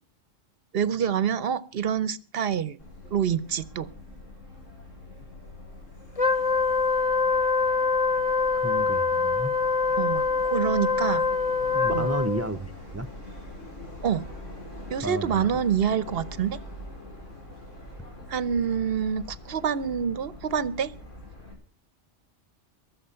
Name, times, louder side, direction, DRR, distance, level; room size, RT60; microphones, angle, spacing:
voice 1, 0.7-2.8 3.1-3.9 10.0-11.3 11.9-12.1 14.0-14.2 14.9-16.6 18.3-20.9, right 8 dB, 55° right, 1.0 m, -27 dB
Subway metro underground, 2.8-21.5, left 1 dB, 80° left, 5.1 m, -43 dB
Wind instrument woodwind instrument, 6.2-12.5, left 4 dB, 30° left, 1.0 m, -24 dB
voice 2, 8.6-9.8 11.7-13.1 15.0-15.5, right 1 dB, 15° right, 0.7 m, -32 dB
22.5 x 7.5 x 5.6 m
omnidirectional pair, 1.3 m